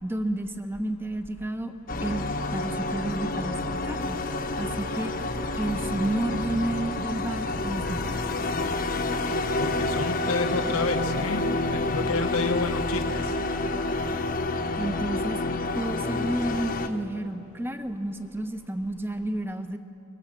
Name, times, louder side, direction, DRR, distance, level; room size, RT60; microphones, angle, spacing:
voice 1, 0.0-1.7 2.0-4.2 4.6-5.1 5.6-8.0 14.8-15.4 15.8-19.8, right 1 dB, 10° right, 8 dB, 1.0 m, -31 dB
sound 1, 1.9-16.9, left 2 dB, 40° left, 1.1 m, -29 dB
voice 2, 9.6-11.4 11.7-13.2, left 3 dB, 75° left, 7 dB, 1.1 m, -29 dB
25.0 x 22.5 x 7.4 m, 2.8 s
head